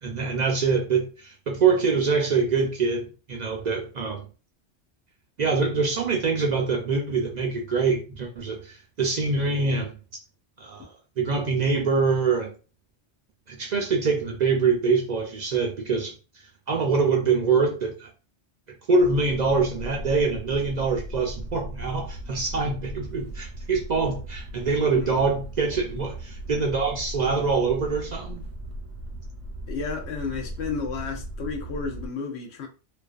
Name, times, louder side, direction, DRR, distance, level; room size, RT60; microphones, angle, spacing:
voice 1, 0.0-4.3 5.4-9.9 10.6-10.9 11.2-12.5 13.5-16.1 16.7-18.1 18.9-28.4, right 4 dB, 55° right, 0.5 m, -24 dB
sound 1, 19.0-32.1, right 1 dB, 80° right, 0.9 m, -38 dB
voice 2, 29.7-32.7, left 5 dB, 85° left, 0.9 m, -32 dB
2.4 x 2.3 x 2.3 m
omnidirectional pair, 1.1 m